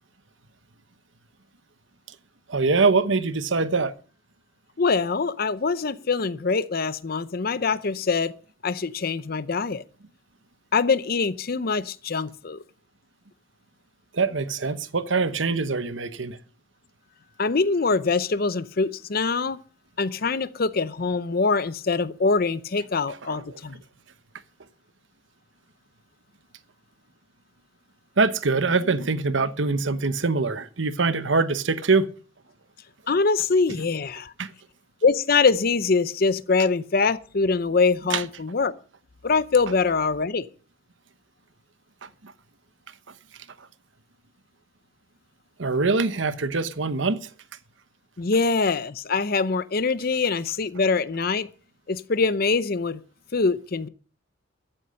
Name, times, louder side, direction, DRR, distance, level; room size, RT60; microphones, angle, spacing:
voice 1, 2.5-3.9 14.1-16.4 23.3-23.6 28.2-32.1 34.4-34.5 38.1-38.2 42.0-42.3 45.6-47.3, right 4 dB, 75° right, 1.0 m, -24 dB
voice 2, 4.8-8.3 8.6-9.8 10.7-12.6 17.4-19.6 20.0-23.8 33.1-34.3 35.0-38.7 39.2-40.5 48.2-51.5 51.9-53.0 53.3-53.9, left 4 dB, 50° left, 0.7 m, -23 dB
14.0 x 9.0 x 6.4 m
head